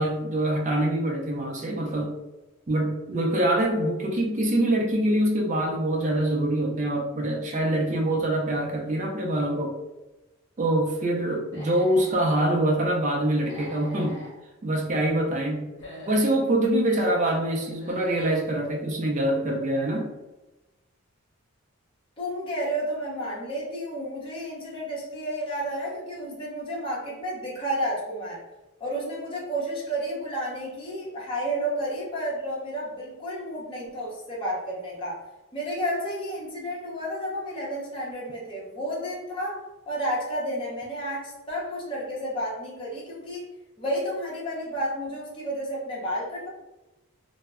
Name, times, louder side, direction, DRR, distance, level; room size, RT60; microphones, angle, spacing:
voice 1, 0.0-2.2 2.7-9.8 10.6-14.2 14.6-15.7 16.1-20.1, right 1 dB, 35° right, 1 dB, 0.4 m, -25 dB
Human voice / Animal, 11.4-12.2 13.4-14.4 15.6-16.5 17.6-18.5, equal, 50° left, 0.8 m, -44 dB
voice 2, 22.2-28.4 28.8-35.2 35.5-43.5 43.8-46.5, equal, 25° left, -6 dB, 0.7 m, -31 dB
2.1 x 2.0 x 3.5 m, 1.0 s
head